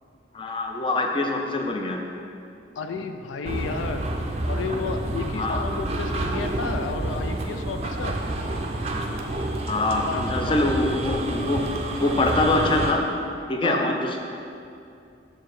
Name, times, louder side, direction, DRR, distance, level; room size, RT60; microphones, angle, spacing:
voice 1, 0.3-2.0 5.4-5.6 9.7-11.6 12.0-13.0 13.5-14.2, left 2 dB, 25° left, 2 dB, 0.4 m, -24 dB
voice 2, 2.8-4.1 4.5-8.2 10.1-10.6 13.6-13.9, left 5 dB, 85° left, 7 dB, 0.4 m, -32 dB
sound 1, 3.4-12.9, right 1 dB, 35° right, 0.4 m, -29 dB
5.9 x 4.7 x 4.7 m, 2.5 s
head